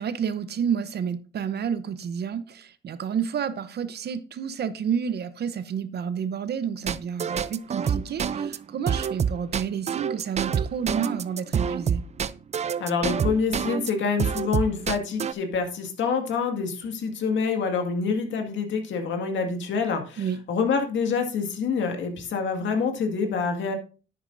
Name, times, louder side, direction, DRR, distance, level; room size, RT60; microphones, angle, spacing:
voice 1, 0.0-12.0 20.2-20.4, right 7 dB, 55° right, 0.8 m, -30 dB
sound 1, 6.9-13.9 14.2-15.3, right 7 dB, 35° right, 0.4 m, -26 dB
voice 2, 12.8-23.7, left 5 dB, 70° left, 2.0 m, -26 dB
10.0 x 8.9 x 2.6 m
cardioid pair, 90°, 20 cm